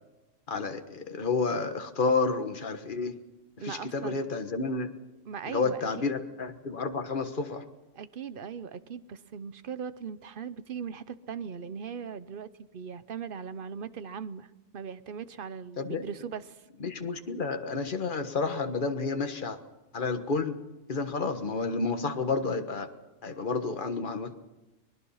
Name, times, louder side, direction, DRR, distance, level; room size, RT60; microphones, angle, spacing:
voice 1, 0.5-3.2 3.6-4.9 5.5-7.6 15.8-16.0 16.8-19.6 19.9-20.6 20.9-22.9 23.2-24.3, left 4 dB, 40° left, 7 dB, 1.5 m, -30 dB
voice 2, 3.6-4.2 5.2-6.1 7.9-16.6, right 7 dB, 50° right, 14 dB, 0.9 m, -39 dB
24.0 x 20.0 x 5.7 m, 1.1 s
omnidirectional pair, 1.3 m